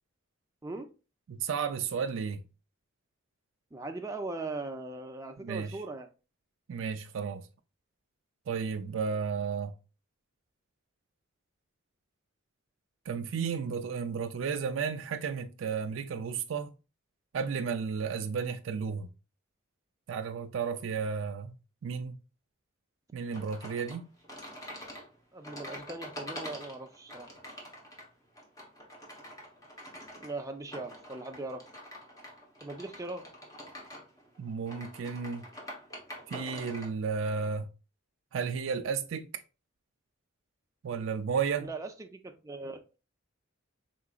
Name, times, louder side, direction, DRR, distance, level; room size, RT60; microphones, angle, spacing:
voice 1, 1.3-2.4 5.4-5.8 6.7-7.5 8.5-9.7 13.1-16.7 17.3-19.1 20.1-21.5 21.8-22.2 23.1-24.1 34.4-35.5 36.3-37.7 38.3-39.4 40.8-41.7, right 6 dB, 70° right, 0.4 m, -33 dB
voice 2, 3.7-6.1 24.7-24.8 25.3-27.3 30.2-31.6 32.6-33.2 41.6-42.8, right 2 dB, 15° right, 0.5 m, -39 dB
sound 1, 23.3-36.9, equal, 15° left, 1.0 m, -46 dB
4.8 x 3.7 x 2.4 m
head